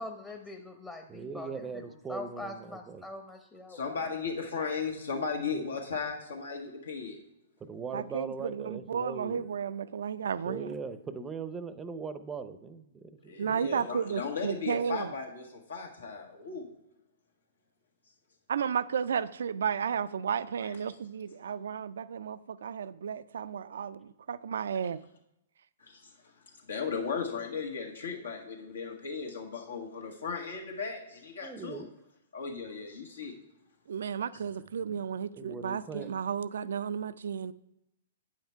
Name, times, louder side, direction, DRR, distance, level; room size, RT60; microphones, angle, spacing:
voice 1, 0.0-3.8, left 2 dB, 10° left, 2 dB, 0.8 m, -43 dB
voice 2, 1.1-3.0 7.6-9.5 10.5-14.0 31.4-31.9 34.8-35.0 35.3-36.2, right 5 dB, 15° right, 12 dB, 0.6 m, -40 dB
voice 3, 3.7-7.2 13.2-16.7 20.6-20.7 25.8-26.3 26.6-31.8 32.3-33.3, left 5 dB, 80° left, 1 dB, 1.7 m, -36 dB
voice 4, 7.9-10.7 13.4-15.1 18.5-25.0 33.9-37.5, right 7 dB, 70° right, 16 dB, 0.4 m, -33 dB
8.9 x 5.7 x 4.5 m, 0.86 s
hypercardioid pair, 120°, 0 cm